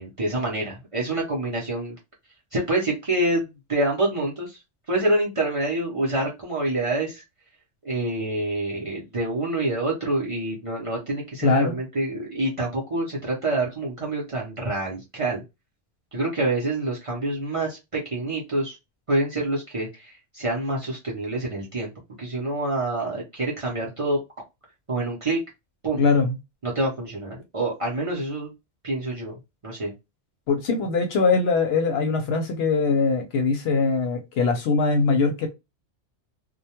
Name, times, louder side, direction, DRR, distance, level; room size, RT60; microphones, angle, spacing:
voice 1, 0.0-2.0 2.5-4.6 4.9-7.2 7.8-15.4 16.1-18.7 19.1-21.9 22.2-24.2 24.9-25.4 25.8-26.0 26.6-28.5 28.8-29.3 29.6-29.9, right 2 dB, 35° right, 0.6 m, -27 dB
voice 2, 11.4-11.8 26.0-26.4 30.5-35.5, left 4 dB, 70° left, 0.8 m, -22 dB
2.2 x 2.2 x 2.8 m
omnidirectional pair, 1.2 m